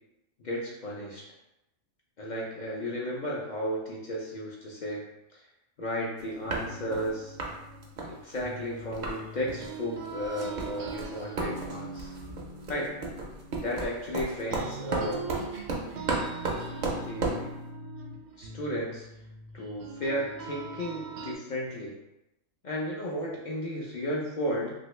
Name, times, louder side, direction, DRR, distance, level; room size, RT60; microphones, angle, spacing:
voice 1, 0.4-1.2 2.2-5.0 5.3-5.4 5.8-7.4 8.1-12.1 12.7-12.9 13.6-15.3 16.9-17.5 18.4-19.1 19.5-22.0 22.6-24.7, equal, 60° left, -4 dB, 0.4 m, -34 dB
sound 1, 6.2-6.3 6.5-7.1 7.4-7.6 7.8-9.2 9.5-9.7 10.1-17.5, right 2 dB, 55° right, 0.5 m, -34 dB
sound 2, 6.4-14.2 14.5-21.3, right 4 dB, 80° right, 1.0 m, -41 dB
2.8 x 2.7 x 3.1 m, 0.90 s
omnidirectional pair, 1.4 m